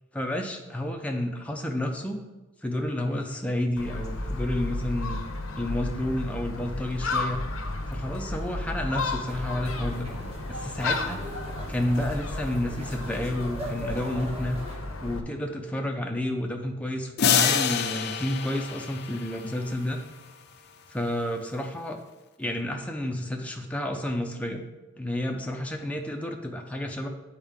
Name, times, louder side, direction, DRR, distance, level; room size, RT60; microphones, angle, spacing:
voice 1, 0.1-2.2 2.6-5.2 5.6-7.4 7.9-10.1 10.5-11.2 11.7-14.6 15.0-20.0 20.9-22.0 22.4-24.6 25.0-27.1, left 1 dB, 5° left, 2 dB, 0.6 m, -30 dB
Gull seagull, 3.8-15.2, left 2 dB, 80° left, 0.8 m, -33 dB
sound 1, 9.3-14.8, equal, 30° right, 1.2 m, -40 dB
sound 2, 17.2-19.9, left 8 dB, 50° left, 0.5 m, -26 dB
9.0 x 4.4 x 3.6 m, 1.1 s
head